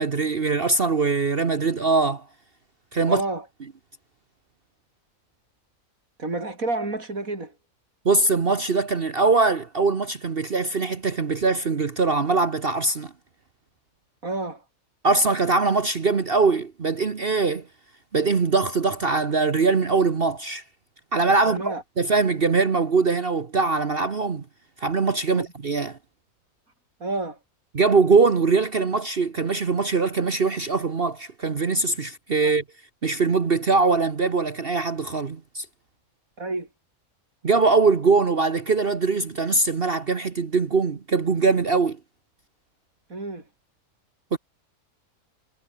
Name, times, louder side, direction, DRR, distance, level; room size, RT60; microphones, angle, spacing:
voice 1, 0.0-2.2 2.9-3.2 8.0-13.1 15.0-17.7 18.1-20.6 21.1-24.4 24.8-26.0 27.7-32.6 33.0-35.6 37.4-42.0 44.3-44.4, right 4 dB, 45° right, 1.4 m, -22 dB
voice 2, 3.1-3.5 6.2-7.5 14.2-14.7 21.5-21.8 25.3-25.5 27.0-27.4 32.4-32.5 36.4-36.7 43.1-43.5, right 2 dB, 75° right, 5.4 m, -30 dB
omnidirectional pair, 1.5 m